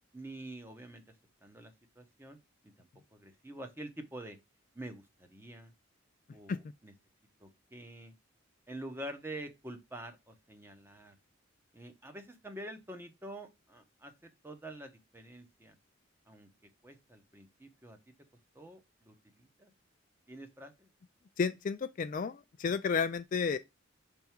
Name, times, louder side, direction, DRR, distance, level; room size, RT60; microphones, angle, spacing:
voice 1, 0.1-1.0 1.4-2.4 2.8-4.4 4.8-5.7 6.3-6.9 7.4-8.1 8.7-11.1 11.7-14.1 14.4-15.7 16.3-16.5 16.8-18.0 18.5-19.7 20.3-20.9, right 1 dB, 10° right, 0.9 m, -47 dB
voice 2, 21.4-23.6, left 5 dB, 40° left, 0.3 m, -32 dB
6.7 x 3.6 x 4.4 m
head